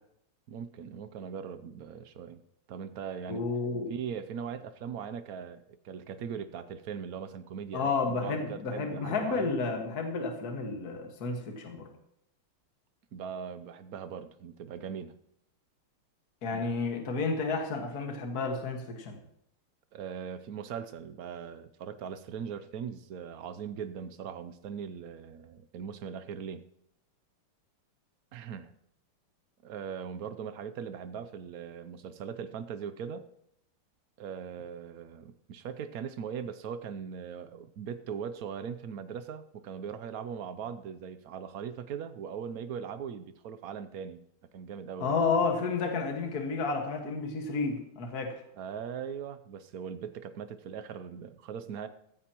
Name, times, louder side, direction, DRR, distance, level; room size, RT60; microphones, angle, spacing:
voice 1, 0.5-2.4 2.7-3.5 3.9-7.9 8.2-9.5 13.1-15.2 16.5-16.6 19.9-26.7 28.3-28.7 29.6-33.3 34.2-44.2 44.5-45.2 48.6-51.9, right 7 dB, 80° right, 11 dB, 0.8 m, -40 dB
voice 2, 3.3-3.9 7.7-11.9 16.4-19.2 45.0-48.4, left 4 dB, 45° left, 2 dB, 2.1 m, -31 dB
15.0 x 14.5 x 3.0 m, 0.75 s
omnidirectional pair, 2.4 m